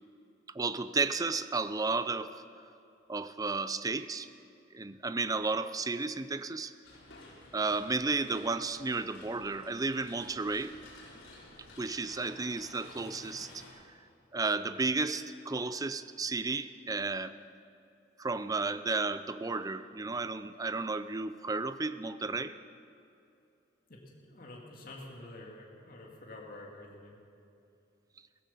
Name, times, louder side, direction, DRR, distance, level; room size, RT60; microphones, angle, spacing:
voice 1, 0.5-2.4 3.1-4.3 4.7-6.7 7.5-10.7 11.8-13.5 14.3-17.3 18.2-22.6, right 3 dB, 20° right, 13 dB, 0.4 m, -33 dB
sound 1, 6.8-13.7, left 2 dB, 80° left, 5.2 m, -53 dB
voice 2, 23.9-27.2, left 2 dB, 50° left, -2 dB, 2.1 m, -48 dB
16.5 x 15.0 x 5.7 m, 2.6 s
head